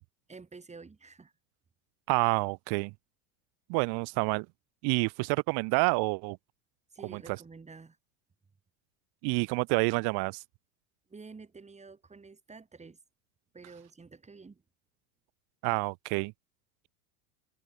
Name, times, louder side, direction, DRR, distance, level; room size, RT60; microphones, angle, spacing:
voice 1, 0.3-1.3 6.9-8.0 11.1-13.0 13.5-14.6, right 4 dB, 15° right, 5.9 m, -49 dB
voice 2, 2.1-2.9 3.7-4.5 4.8-6.4 7.1-7.2 9.2-10.4 15.6-16.3, right 31 dB, 55° right, 1.4 m, -28 dB
open air
supercardioid pair, 130°, 47 cm